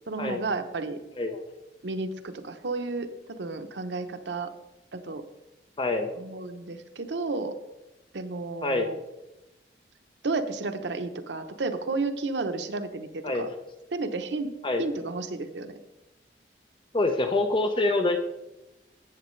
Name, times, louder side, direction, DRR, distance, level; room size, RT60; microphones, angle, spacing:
voice 1, 0.1-1.0 1.8-4.5 4.9-5.2 6.2-7.5 8.1-9.0 10.2-13.5 13.9-14.5 14.8-15.8, right 3 dB, 80° right, 8 dB, 0.8 m, -32 dB
voice 2, 5.8-6.2 8.6-8.9 13.2-13.6 14.6-14.8 16.9-18.2, left 2 dB, 30° left, 5 dB, 0.6 m, -26 dB
13.5 x 8.2 x 3.2 m, 0.98 s
head